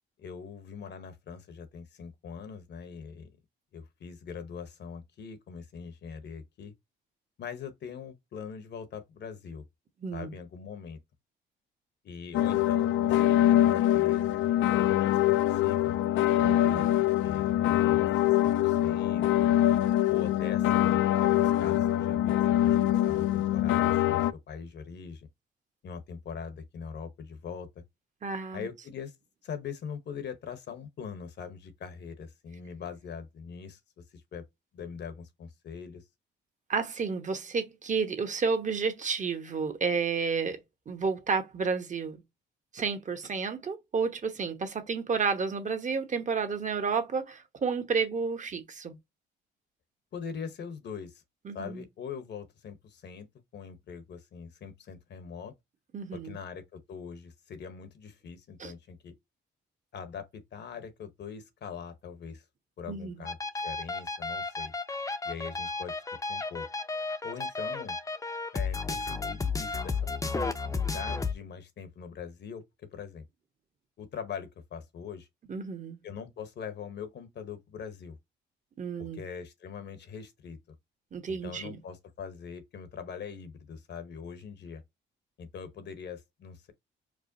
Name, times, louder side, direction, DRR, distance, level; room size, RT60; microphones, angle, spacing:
voice 1, 0.2-3.3 3.7-6.7 7.4-9.6 10.1-11.0 12.0-16.0 16.4-16.9 17.2-19.5 20.1-22.4 22.6-25.3 25.8-27.8 28.5-29.1 29.4-34.5 34.7-36.1 50.1-51.2 51.5-53.3 53.5-55.5 56.1-59.1 59.9-62.4 62.8-63.4 63.6-64.7 65.2-65.9 66.3-66.7 67.2-68.0 68.5-70.0 70.4-72.6 72.9-73.2 74.0-75.3 76.0-78.2 79.0-80.6 81.3-84.8 85.4-86.7, left 6 dB, 60° left, 0.9 m, -42 dB
voice 2, 10.0-10.3 16.4-17.0 28.2-28.7 36.7-40.6 40.9-42.2 42.7-49.0 51.4-51.8 55.9-56.4 58.6-58.7 62.9-63.3 75.5-76.0 78.8-79.2 81.1-81.8, right 5 dB, 40° right, 1.0 m, -31 dB
sound 1, 12.3-24.3, left 13 dB, 75° left, 0.4 m, -24 dB
sound 2, 63.3-71.3, left 4 dB, 15° left, 0.6 m, -33 dB
4.8 x 2.2 x 2.7 m
cardioid pair, 90°, 20 cm